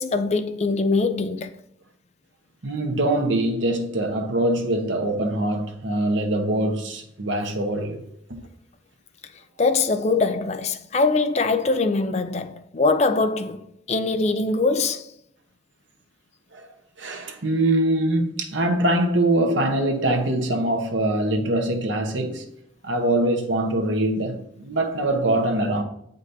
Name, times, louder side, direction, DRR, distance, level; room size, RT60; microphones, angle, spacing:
voice 1, 0.0-1.6 9.6-15.1, left 3 dB, 35° left, 0.4 m, -22 dB
voice 2, 2.6-8.0 16.5-16.7 17.0-22.4 22.8-25.8, right 1 dB, 85° right, 1.1 m, -23 dB
7.9 x 5.2 x 2.7 m
head